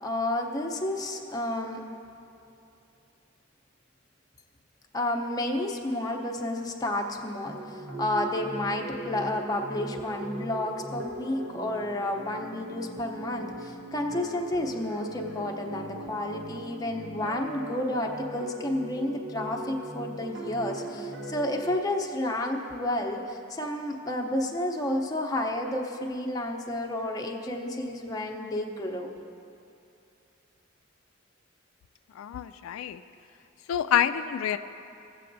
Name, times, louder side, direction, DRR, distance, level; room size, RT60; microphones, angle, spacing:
voice 1, 0.0-1.8 4.9-29.1, left 1 dB, 20° left, 1 dB, 0.6 m, -31 dB
sound 1, 7.4-21.8, right 2 dB, 55° right, 1.0 m, -39 dB
voice 2, 32.2-33.0 33.7-34.6, left 9 dB, 90° left, 11 dB, 0.3 m, -27 dB
17.0 x 7.6 x 2.6 m, 2.7 s
head